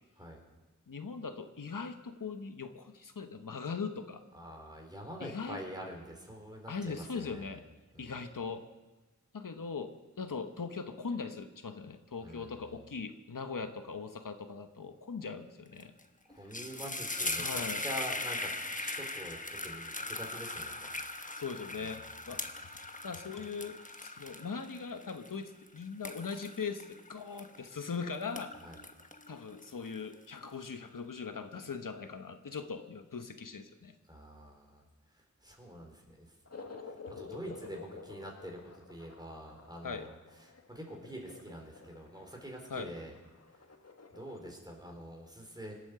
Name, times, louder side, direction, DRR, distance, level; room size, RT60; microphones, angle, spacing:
voice 1, 0.9-4.2 5.2-5.6 6.7-7.6 8.0-8.6 9.3-15.9 17.4-17.8 21.3-22.4 23.0-28.5 29.3-33.9 39.8-40.1 42.7-42.9, left 5 dB, 90° left, 8 dB, 1.0 m, -40 dB
voice 2, 4.3-7.5 7.9-8.1 12.2-12.7 16.3-20.9 21.8-21.9 28.6-28.8 34.1-34.8 35.1-36.3 36.9-40.2 40.4-43.1 44.1-45.7, equal, 15° right, 1 dB, 4.3 m, -45 dB
sound 1, 15.8-16.0 16.3-27.9 28.2-30.1, left 2 dB, 25° left, 1.1 m, -40 dB
sound 2, 36.5-44.5, left 4 dB, 50° left, 1.5 m, -50 dB
25.0 x 8.6 x 6.7 m, 1.1 s
wide cardioid pair, 65°, 32 cm